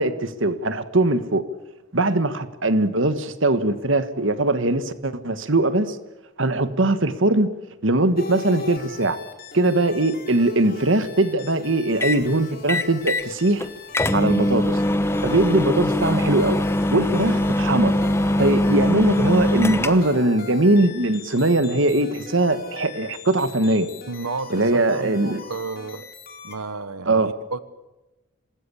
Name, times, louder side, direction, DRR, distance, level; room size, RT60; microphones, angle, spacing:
voice 1, 0.0-1.4 1.9-6.0 6.4-7.5 7.8-9.2 9.5-13.7 14.1-14.8 15.2-16.6 16.9-17.9 18.4-23.9 24.5-25.4 27.0-27.3, right 2 dB, 60° right, 12 dB, 1.5 m, -21 dB
sound 1, 8.1-26.6, left 4 dB, 40° left, 4.9 m, -40 dB
sound 2, 12.0-12.2 12.7-13.3 13.6-13.7 13.9-20.2, left 1 dB, 10° left, 1.0 m, -22 dB
voice 2, 24.1-26.0 26.4-27.6, right 3 dB, 90° right, 13 dB, 1.2 m, -32 dB
26.5 x 20.0 x 8.5 m, 1.0 s
head